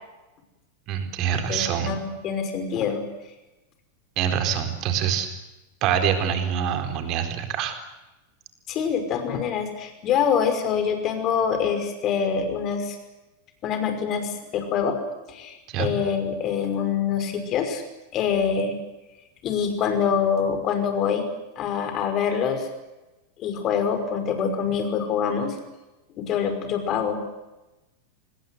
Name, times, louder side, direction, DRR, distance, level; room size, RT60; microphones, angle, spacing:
voice 1, 0.9-1.9 4.2-5.3 5.8-7.7 15.7-15.9, right 8 dB, 40° right, 7 dB, 4.3 m, -25 dB
voice 2, 1.5-3.0 8.7-13.0 13.6-15.0 15.3-17.8 18.1-18.8 19.4-21.3 21.6-22.7 23.4-25.6 26.2-27.2, left 7 dB, 35° left, 7 dB, 5.5 m, -25 dB
25.5 x 21.0 x 8.1 m, 1.0 s
figure-of-eight pair, 90°, 0 cm